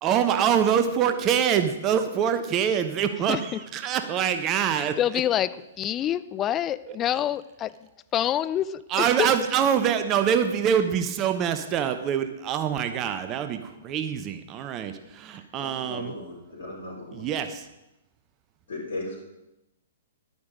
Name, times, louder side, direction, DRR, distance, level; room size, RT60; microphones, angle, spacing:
voice 1, 0.0-5.0 6.9-7.0 8.9-16.1 17.1-17.7, right 8 dB, 25° right, 9 dB, 0.8 m, -25 dB
voice 2, 3.3-3.6 4.7-7.8 8.1-9.3, left 11 dB, 20° left, 15 dB, 0.4 m, -27 dB
voice 3, 15.5-17.3 18.7-19.2, left 2 dB, 60° left, -4 dB, 4.3 m, -37 dB
11.0 x 9.6 x 5.2 m, 0.91 s
figure-of-eight pair, 115°, 0 cm